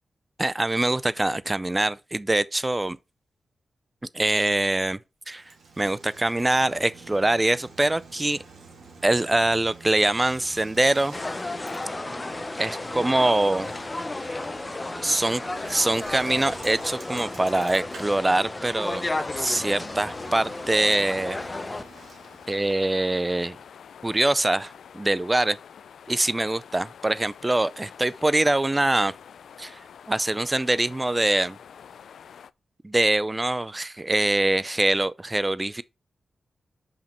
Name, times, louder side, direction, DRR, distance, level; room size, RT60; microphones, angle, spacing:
voice 1, 0.4-3.0 4.1-5.0 5.3-8.4 9.0-11.2 12.6-13.7 15.0-19.1 19.4-21.4 22.5-23.6 24.0-25.6 26.1-29.1 29.6-31.6 32.8-35.8, right 2 dB, 15° right, 0.4 m, -24 dB
Bicycle, 5.3-22.8, right 4 dB, 85° right, 2.7 m, -47 dB
sound 1, 11.1-21.8, left 2 dB, 25° left, 0.6 m, -33 dB
sound 2, 18.8-32.5, left 7 dB, 90° left, 0.3 m, -47 dB
5.6 x 5.2 x 4.3 m
wide cardioid pair, 110°, 0 cm